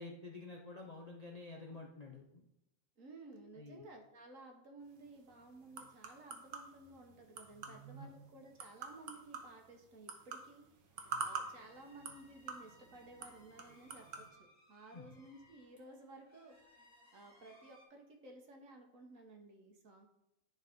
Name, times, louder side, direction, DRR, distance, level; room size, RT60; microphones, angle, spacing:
voice 1, 0.0-2.4 3.6-3.8 7.7-8.1 11.1-11.3 14.9-15.0, left 3 dB, 45° left, 1 dB, 0.5 m, -50 dB
voice 2, 3.0-20.1, right 2 dB, 50° right, 3 dB, 1.4 m, -56 dB
sound 1, 4.8-14.3, right 5 dB, 75° right, 1.6 m, -48 dB
sound 2, 10.8-17.9, left 1 dB, 10° right, 1.7 m, -66 dB
10.5 x 4.0 x 5.2 m, 0.88 s
omnidirectional pair, 1.9 m